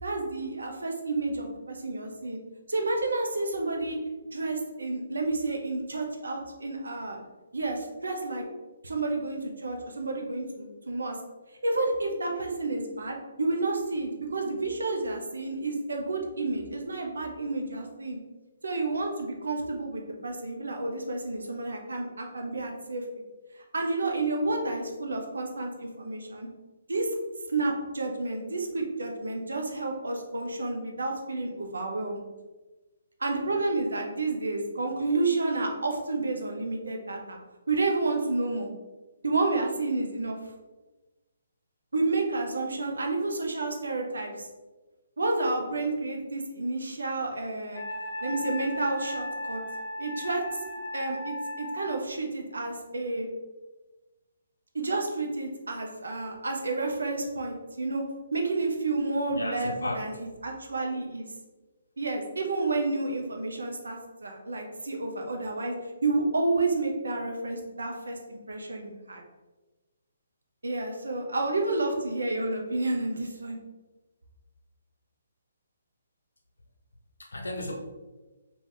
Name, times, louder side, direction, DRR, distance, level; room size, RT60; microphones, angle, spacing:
voice 1, 0.0-2.4 2.7-4.0 4.3-7.2 7.5-8.4 8.8-11.2 11.6-18.2 18.6-23.0 23.7-26.5 26.9-27.1 27.5-32.2 33.2-37.4 37.7-38.7 39.2-40.4 41.9-44.5 45.2-47.8 48.2-49.6 50.0-50.4 50.9-53.3 54.7-58.0 58.3-60.1 60.4-61.3 62.0-65.7 66.0-69.2 70.6-73.6, right 2 dB, 65° right, 2 dB, 0.7 m, -30 dB
Wind instrument woodwind instrument, 47.7-52.0, left 1 dB, 20° left, 0.9 m, -36 dB
voice 2, 59.3-60.0 77.2-77.7, left 1 dB, 65° left, 1 dB, 0.6 m, -34 dB
3.5 x 2.4 x 3.9 m, 1.2 s
figure-of-eight pair, 135°, 0 cm